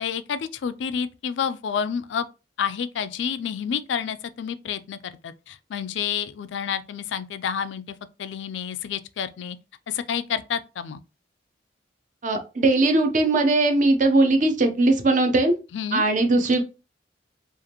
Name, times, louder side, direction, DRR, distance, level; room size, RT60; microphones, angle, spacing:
voice 1, 0.0-2.3 2.6-9.6 9.9-11.0 15.7-16.1, left 7 dB, 80° left, 0.4 m, -29 dB
voice 2, 12.2-15.6 15.9-16.6, right 2 dB, 45° right, 0.7 m, -20 dB
4.8 x 2.5 x 2.9 m
head